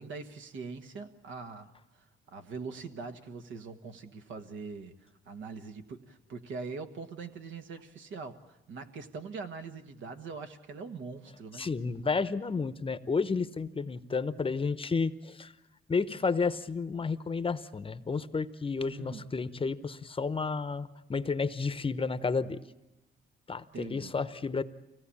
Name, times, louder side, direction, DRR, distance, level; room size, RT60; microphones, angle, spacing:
voice 1, 0.0-2.0 2.3-11.7 18.9-19.3 23.7-24.2, right 4 dB, 75° right, 6 dB, 1.5 m, -42 dB
voice 2, 11.6-15.5 15.9-22.6 23.5-24.6, left 4 dB, 25° left, 13 dB, 0.8 m, -31 dB
24.5 x 17.5 x 8.6 m, 0.99 s
cardioid pair, 90°, 20 cm